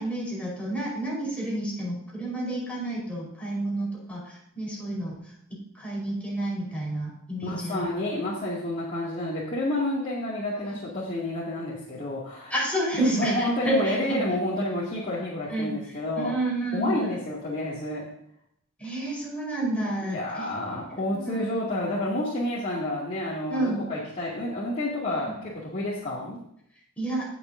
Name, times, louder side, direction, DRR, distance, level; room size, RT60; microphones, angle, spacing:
voice 1, 0.0-5.2 5.5-7.8 10.7-10.8 12.5-14.2 15.5-17.0 18.8-21.5 23.5-23.8 27.0-27.3, right 1 dB, 5° left, -4 dB, 4.5 m, -30 dB
voice 2, 7.4-12.5 13.0-16.3 16.7-18.1 20.0-26.4, left 1 dB, 40° left, -9 dB, 2.5 m, -29 dB
18.0 x 7.0 x 2.7 m, 0.72 s
head